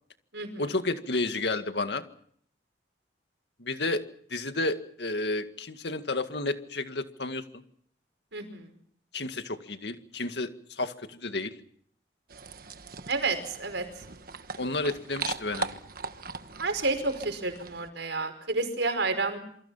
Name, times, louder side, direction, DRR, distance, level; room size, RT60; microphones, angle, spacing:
voice 1, 0.6-2.0 3.6-4.0 4.3-7.4 9.1-11.5 14.6-15.7, left 2 dB, 70° left, 8 dB, 2.0 m, -31 dB
voice 2, 8.3-8.7 13.1-13.8 16.6-19.4, right 3 dB, 80° right, 8 dB, 5.2 m, -30 dB
sound 1, 12.3-17.9, right 4 dB, 55° right, 1.4 m, -39 dB
27.5 x 24.5 x 5.7 m, 0.63 s
head